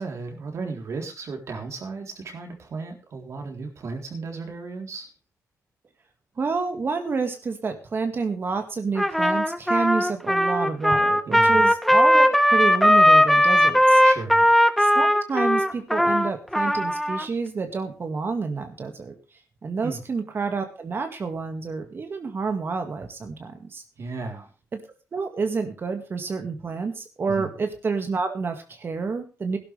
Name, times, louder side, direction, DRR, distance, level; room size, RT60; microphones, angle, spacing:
voice 1, 0.0-5.1 11.3-11.7 14.0-14.4 19.8-20.0 24.0-24.5 27.3-27.5, right 4 dB, 55° right, 3 dB, 3.7 m, -35 dB
voice 2, 6.4-14.0 14.8-19.1 19.6-23.8 24.7-24.8 25.1-29.6, right 4 dB, 40° right, 6 dB, 2.0 m, -29 dB
Trumpet, 9.0-17.3, equal, ahead, 0.9 m, -18 dB
16.5 x 12.0 x 3.4 m, 0.30 s
cardioid pair, 115°, 6 cm